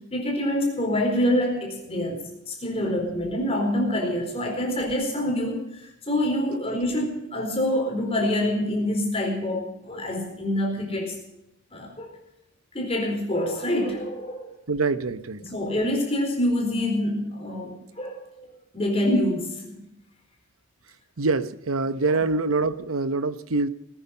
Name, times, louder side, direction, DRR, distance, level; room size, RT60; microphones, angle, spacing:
voice 1, 0.1-5.6 6.1-11.1 11.7-12.1 12.7-14.4 15.4-18.5 18.7-19.8 22.0-22.2, left 1 dB, 25° left, 1 dB, 4.2 m, -26 dB
voice 2, 14.7-15.4 21.2-23.7, right 3 dB, 70° right, 13 dB, 0.9 m, -25 dB
20.0 x 9.8 x 5.4 m, 0.87 s
head